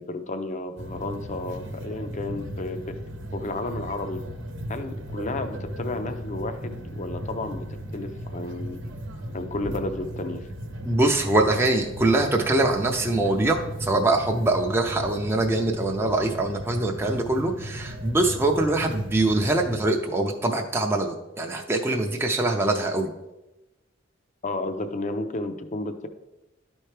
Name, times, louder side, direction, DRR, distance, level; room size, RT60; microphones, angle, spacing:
voice 1, 0.0-3.0 3.3-4.2 4.7-7.7 7.9-8.8 9.3-10.5 24.4-26.1, left 2 dB, 40° left, 8 dB, 0.6 m, -32 dB
sound 1, 0.8-19.8, equal, 70° right, 0.9 m, -36 dB
voice 2, 10.8-23.1, right 2 dB, 15° right, 1 dB, 0.5 m, -23 dB
11.5 x 4.4 x 3.3 m, 0.97 s
head